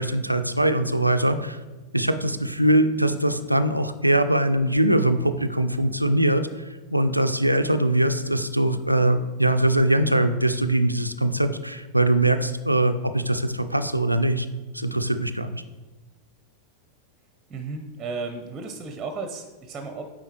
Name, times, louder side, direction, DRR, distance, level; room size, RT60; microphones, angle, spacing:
voice 1, 0.0-1.6 1.9-6.6 6.9-14.5 14.7-15.6, right 1 dB, 85° right, 9 dB, 0.3 m, -22 dB
voice 2, 17.5-20.1, right 4 dB, 20° right, 5 dB, 0.6 m, -34 dB
9.0 x 3.8 x 3.0 m, 1.2 s
figure-of-eight pair, 90°, 0 cm